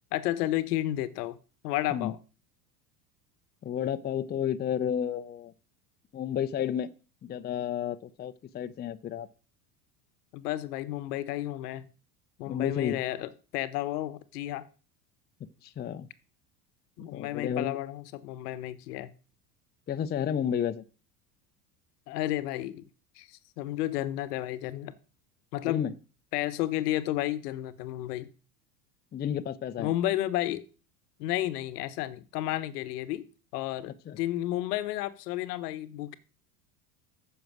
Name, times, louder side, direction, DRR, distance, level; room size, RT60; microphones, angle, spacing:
voice 1, 0.1-1.4 1.6-2.2 10.3-11.9 12.4-14.7 17.0-19.1 22.1-22.8 23.2-24.9 25.5-25.9 26.3-28.3 29.8-30.6 31.2-33.3 33.5-36.2, left 14 dB, 70° left, 1.0 m, -32 dB
voice 2, 3.6-5.5 6.1-6.9 7.2-9.3 12.5-13.0 15.6-16.1 17.1-17.8 19.9-20.8 25.7-25.9 29.1-29.9 34.1-34.2, left 9 dB, 20° left, 0.5 m, -31 dB
9.1 x 6.3 x 6.1 m
hypercardioid pair, 85°, 48 cm